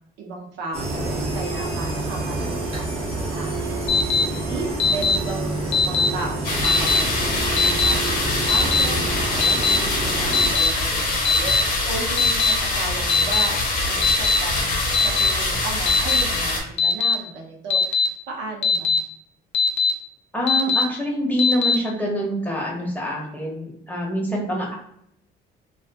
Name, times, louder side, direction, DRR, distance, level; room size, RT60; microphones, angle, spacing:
voice 1, 0.2-2.9 3.3-19.0, right 3 dB, 90° right, 0 dB, 0.7 m, -35 dB
sound 1, 0.7-10.5, right 2 dB, 35° right, 0.7 m, -28 dB
Alarm, 3.9-4.2 4.8-5.2 5.7-6.1 6.6-7.0 7.6-7.9 8.5-8.8 9.4-9.8 10.3-10.7 11.2-11.6 12.2-12.5 13.1-13.4 14.0-14.4 14.9-15.3 15.9-16.2 16.8-17.1 17.7-18.1 18.6-19.0 19.5-19.9 20.5-20.8 21.4-21.7, left 5 dB, 75° left, 0.5 m, -19 dB
sound 2, 6.4-16.6, left 2 dB, 55° left, 0.8 m, -24 dB
voice 2, 20.3-24.7, equal, 10° left, -3 dB, 0.8 m, -25 dB
2.4 x 2.4 x 2.5 m, 0.71 s
cardioid pair, 105°, 18 cm